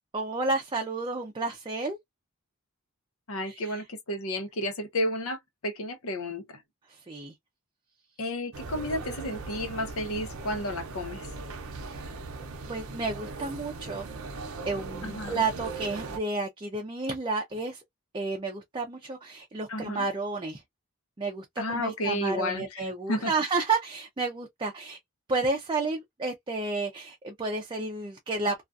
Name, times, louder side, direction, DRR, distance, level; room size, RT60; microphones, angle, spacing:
voice 1, 0.1-2.0 3.4-3.7 6.9-7.3 11.8-12.1 12.7-14.0 14.7-17.8 18.1-20.6 21.2-25.0 25.3-28.7, right 3 dB, 25° right, 0.4 m, -31 dB
voice 2, 3.3-6.6 8.2-11.3 15.0-15.4 19.7-20.0 21.6-22.8 23.1-23.3, left 1 dB, 85° left, 0.8 m, -32 dB
sound 1, 8.5-16.2, right 3 dB, 90° right, 0.6 m, -39 dB
2.4 x 2.3 x 2.4 m
head